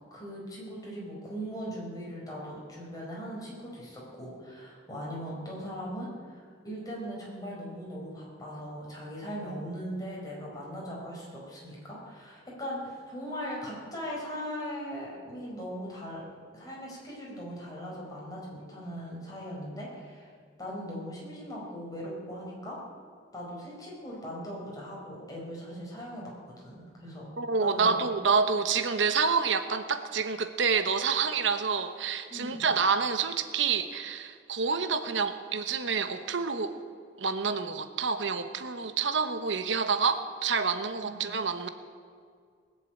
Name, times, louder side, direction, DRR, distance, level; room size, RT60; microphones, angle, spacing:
voice 1, 0.1-16.2 16.5-20.3 20.6-22.8 23.3-27.3 27.6-28.0 32.3-32.6 41.1-41.2, equal, 20° left, -4 dB, 4.5 m, -39 dB
voice 2, 27.4-36.7 37.2-41.7, right 5 dB, 85° right, 9 dB, 0.9 m, -28 dB
20.0 x 7.6 x 9.0 m, 2.1 s
head